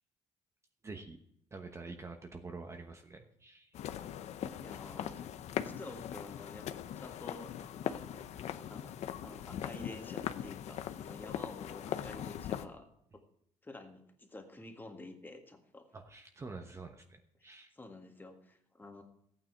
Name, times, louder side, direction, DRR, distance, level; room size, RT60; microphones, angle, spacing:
voice 1, 0.8-1.2 1.5-3.7 15.9-17.7, right 3 dB, 25° right, 5 dB, 1.1 m, -47 dB
sound 1, 3.7-12.7, left 10 dB, 65° left, 0.7 m, -40 dB
voice 2, 4.6-5.3 5.6-6.7 7.0-7.5 7.8-8.3 8.7-9.0 9.2-12.9 13.1-13.2 13.6-15.9 17.4-19.0, left 2 dB, 15° left, 4 dB, 1.8 m, -50 dB
14.0 x 9.2 x 4.6 m, 0.73 s
cardioid pair, 130°, 12 cm